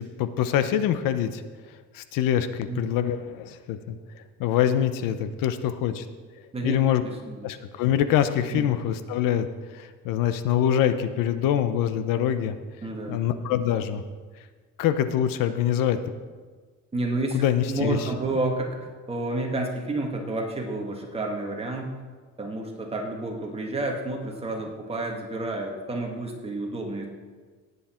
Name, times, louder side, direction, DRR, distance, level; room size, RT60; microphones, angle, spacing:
voice 1, 0.0-1.4 1.9-4.0 4.4-6.1 6.6-7.0 7.4-9.5 9.7-12.6 13.1-14.0 14.8-16.0 17.3-18.1, left 10 dB, 80° left, 11 dB, 0.9 m, -24 dB
voice 2, 6.5-7.5 8.5-8.6 12.8-13.2 16.9-21.9 22.4-27.1, right 2 dB, 20° right, 1 dB, 1.7 m, -30 dB
18.0 x 8.4 x 4.4 m, 1.5 s
cardioid pair, 155°, 32 cm